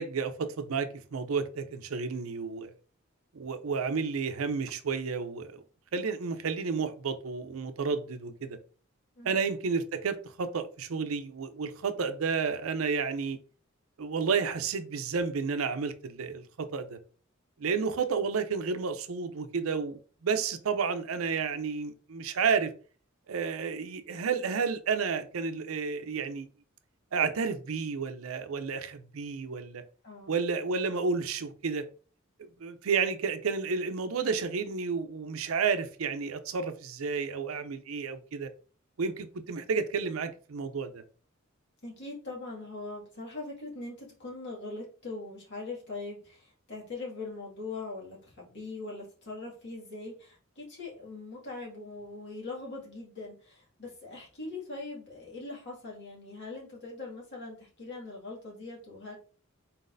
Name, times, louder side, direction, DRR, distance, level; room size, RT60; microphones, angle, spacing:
voice 1, 0.0-2.7 3.3-5.6 5.9-8.6 9.2-13.4 14.0-17.0 17.6-22.7 23.3-26.5 27.1-29.8 30.3-31.8 32.4-38.5 39.0-41.0, right 5 dB, 85° right, 0.5 m, -31 dB
voice 2, 30.0-30.4 41.8-59.1, left 3 dB, 60° left, 2.1 m, -41 dB
4.0 x 4.0 x 2.6 m
head